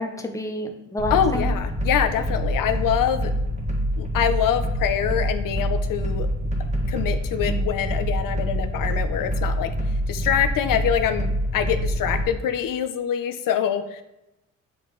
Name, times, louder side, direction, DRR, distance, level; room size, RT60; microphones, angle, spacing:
voice 1, 0.0-1.5 7.5-7.7, left 1 dB, 10° left, 4 dB, 0.8 m, -30 dB
sound 1, 1.0-12.2, equal, 20° right, 1.5 m, -26 dB
voice 2, 1.1-3.5 4.0-6.3 6.9-9.7 10.1-14.0, left 9 dB, 75° left, 9 dB, 0.6 m, -25 dB
7.8 x 4.1 x 3.1 m, 0.91 s
cardioid pair, 90°, 33 cm